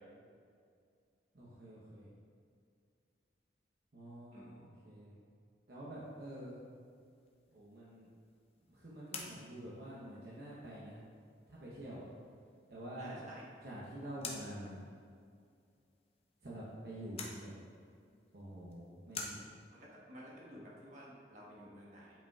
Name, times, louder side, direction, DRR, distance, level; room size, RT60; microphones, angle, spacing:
voice 1, 1.3-2.1 3.9-5.2 5.7-6.6 7.5-8.1 8.6-11.0 11.5-12.0 12.7-13.2 13.6-14.8 16.4-17.5 18.3-19.5, right 1 dB, 65° right, -7 dB, 1.0 m, -47 dB
voice 2, 4.3-4.6 13.0-13.4 19.7-22.2, equal, 40° right, -6 dB, 1.4 m, -52 dB
sound 1, 6.0-19.7, left 4 dB, 35° left, 0.6 m, -52 dB
8.9 x 5.1 x 2.4 m, 2.3 s
head